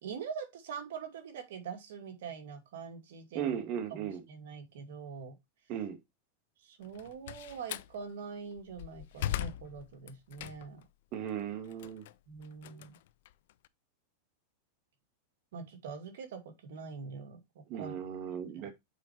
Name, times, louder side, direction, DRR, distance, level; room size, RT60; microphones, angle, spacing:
voice 1, 0.0-3.6 3.9-5.4 6.6-10.8 12.3-13.0 15.5-17.9 18.6-18.7, right 6 dB, 75° right, 2.3 m, -44 dB
voice 2, 3.3-4.2 5.7-6.0 11.1-12.1 17.7-18.7, right 9 dB, 45° right, 2.1 m, -36 dB
Slam, 6.8-7.9 8.5-10.9 11.3-13.7, left 12 dB, 70° left, 0.5 m, -39 dB
6.8 x 4.5 x 4.5 m
supercardioid pair, 135°, 0 cm